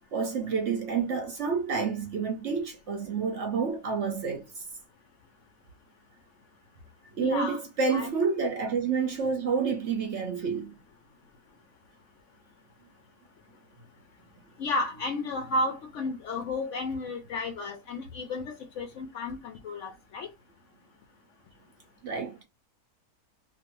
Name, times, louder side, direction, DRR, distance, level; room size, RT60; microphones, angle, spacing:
voice 1, 0.1-4.5 7.2-10.7 22.0-22.4, right 5 dB, 60° right, 0.8 m, -29 dB
voice 2, 7.2-7.6 7.9-8.1 14.6-20.3, left 2 dB, 70° left, 0.7 m, -32 dB
2.7 x 2.5 x 3.0 m
omnidirectional pair, 1.6 m